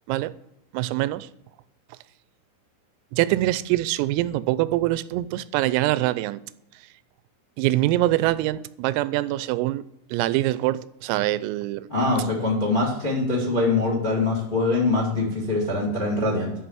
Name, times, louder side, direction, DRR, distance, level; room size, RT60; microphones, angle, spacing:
voice 1, 0.7-1.3 3.1-6.4 7.6-9.8 10.1-11.9, right 16 dB, 90° right, 3.3 m, -24 dB
voice 2, 11.9-16.5, left 2 dB, 35° left, 0.7 m, -23 dB
12.5 x 5.8 x 7.7 m
omnidirectional pair, 5.9 m